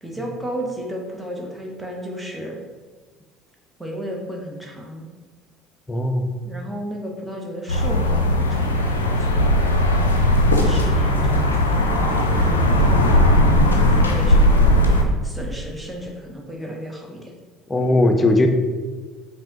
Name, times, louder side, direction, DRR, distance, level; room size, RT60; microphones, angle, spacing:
voice 1, 0.0-2.6 3.8-5.1 6.4-9.6 10.5-13.1 13.7-14.9 15.2-17.3, equal, 10° right, 0 dB, 0.9 m, -33 dB
voice 2, 5.9-6.2 13.6-13.7 17.7-18.5, left 2 dB, 20° left, 4 dB, 0.6 m, -18 dB
sound 1, 7.7-15.0, left 1 dB, 80° left, 0.3 m, -17 dB
5.2 x 2.7 x 2.9 m, 1.4 s
figure-of-eight pair, 60°, 0 cm